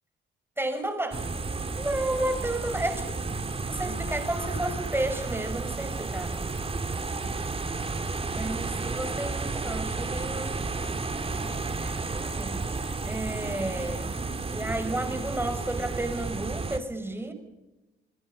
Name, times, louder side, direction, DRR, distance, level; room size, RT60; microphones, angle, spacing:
voice 1, 0.6-1.3 1.8-3.2 3.7-6.5 8.3-10.6 11.4-12.6 13.0-14.2 14.5-17.3, right 1 dB, 10° right, 7 dB, 5.8 m, -32 dB
sound 1, 1.1-16.8, right 3 dB, 30° right, 2.5 m, -32 dB
29.5 x 21.0 x 5.6 m, 1.0 s
cardioid pair, 90°, 20 cm